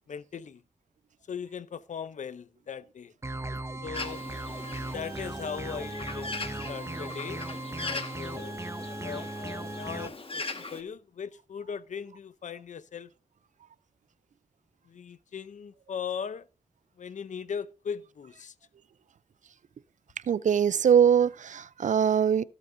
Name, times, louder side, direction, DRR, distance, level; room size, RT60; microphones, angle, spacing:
voice 1, 0.1-0.6 1.3-3.1 3.8-4.2 4.9-7.4 7.7-8.6 8.8-13.1 14.9-16.5 17.0-18.5, left 7 dB, 80° left, 0.7 m, -39 dB
sound 1, 3.2-10.1, right 2 dB, 20° right, 0.9 m, -37 dB
Bird, 3.9-10.8, left 3 dB, 45° left, 1.7 m, -40 dB
voice 2, 20.3-22.4, right 8 dB, 80° right, 0.5 m, -22 dB
16.5 x 8.3 x 2.7 m
cardioid pair, 50°, 13 cm